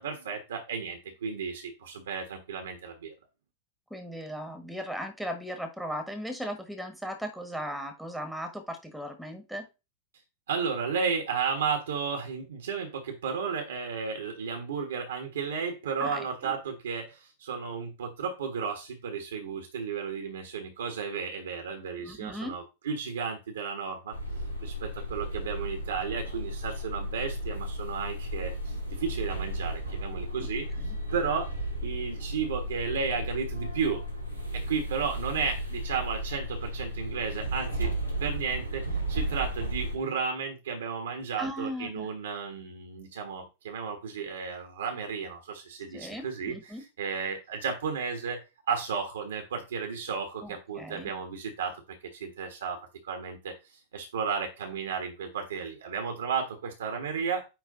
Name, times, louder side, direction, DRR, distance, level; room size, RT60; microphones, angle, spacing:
voice 1, 0.0-3.1 10.5-24.2 24.6-31.5 31.8-34.0 34.5-37.9 38.2-51.8 52.1-52.8 53.0-57.5, right 6 dB, 65° right, 4 dB, 1.4 m, -33 dB
voice 2, 3.9-9.7 16.0-16.2 22.0-22.6 30.4-30.5 30.8-30.9 41.4-42.1 45.9-46.8 50.4-51.1, equal, ahead, 4 dB, 1.5 m, -37 dB
sound 1, 24.1-40.0, equal, 90° right, 2.2 m, -34 dB
9.2 x 3.2 x 3.9 m, 0.26 s
figure-of-eight pair, 90°, 0 cm